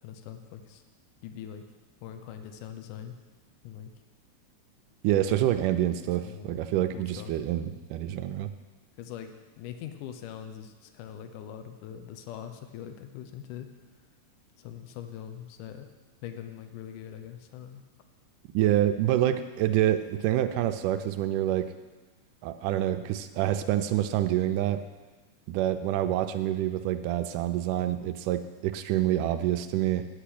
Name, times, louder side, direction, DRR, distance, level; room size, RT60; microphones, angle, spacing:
voice 1, 0.0-0.8 1.2-1.6 2.0-3.1 3.6-3.9 5.2-5.4 6.0-6.6 6.9-7.3 9.0-13.7 14.6-15.9 16.2-17.8, left 9 dB, 80° left, 7 dB, 2.3 m, -42 dB
voice 2, 5.0-8.5 18.5-21.7 22.4-24.8 25.5-30.1, right 12 dB, 85° right, 9 dB, 2.2 m, -27 dB
10.0 x 6.0 x 8.5 m, 1.2 s
omnidirectional pair, 3.7 m